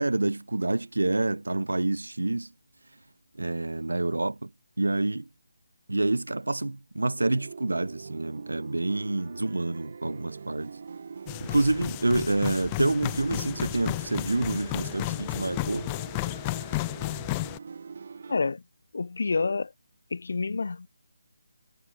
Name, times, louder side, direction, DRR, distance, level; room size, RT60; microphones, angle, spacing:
voice 1, 0.0-2.5 3.4-4.5 4.8-5.3 5.9-10.8 11.4-15.9, right 2 dB, 85° right, 4.8 m, -27 dB
sound 1, 7.2-18.4, right 5 dB, 50° right, 5.8 m, -43 dB
sound 2, 11.3-17.6, left 24 dB, 20° left, 4.8 m, -33 dB
voice 2, 18.3-18.6 18.9-19.7 20.1-20.9, left 4 dB, 65° left, 2.4 m, -28 dB
figure-of-eight pair, 160°, 0 cm